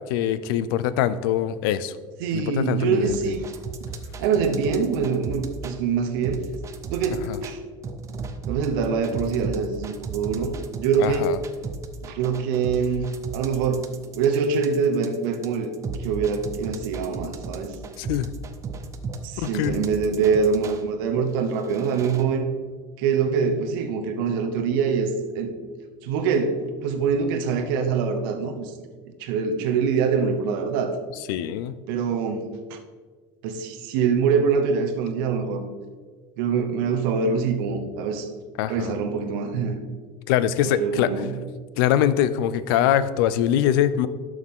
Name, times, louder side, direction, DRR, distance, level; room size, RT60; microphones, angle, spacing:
voice 1, 0.1-1.9 2.3-3.2 7.3-7.4 11.0-11.4 18.0-18.3 19.4-19.8 31.3-31.7 38.6-38.9 40.3-41.1 41.8-44.1, left 11 dB, 85° left, 15 dB, 0.5 m, -23 dB
voice 2, 2.2-3.5 4.2-6.4 6.9-7.6 8.5-11.3 12.1-13.1 13.3-13.8 14.1-15.7 16.0-17.8 19.2-22.5 23.0-25.5 26.0-28.7 29.2-31.0 31.9-32.8 33.4-35.6 36.4-38.3 38.7-39.8 40.6-41.3, right 5 dB, 85° right, 5 dB, 0.9 m, -24 dB
sound 1, 3.0-5.8 6.2-7.5 7.8-20.8 21.4-22.2, right 4 dB, 25° right, 0.6 m, -35 dB
11.5 x 6.3 x 3.7 m, 1.5 s
cardioid pair, 150°, 11 cm